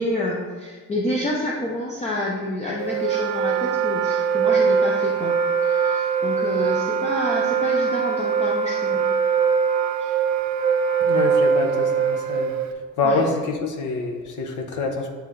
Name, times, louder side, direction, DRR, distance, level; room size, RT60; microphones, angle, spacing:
voice 1, 0.0-5.3 5.6-9.0 10.0-10.1 13.0-13.2, left 1 dB, 20° left, -3 dB, 0.6 m, -28 dB
Wind instrument woodwind instrument, 2.8-12.7, right 6 dB, 70° right, 0.5 m, -22 dB
voice 2, 11.0-12.5 13.0-15.1, left 3 dB, 70° left, 3 dB, 1.0 m, -26 dB
9.7 x 3.4 x 3.1 m, 1.5 s
cardioid pair, 170°, 31 cm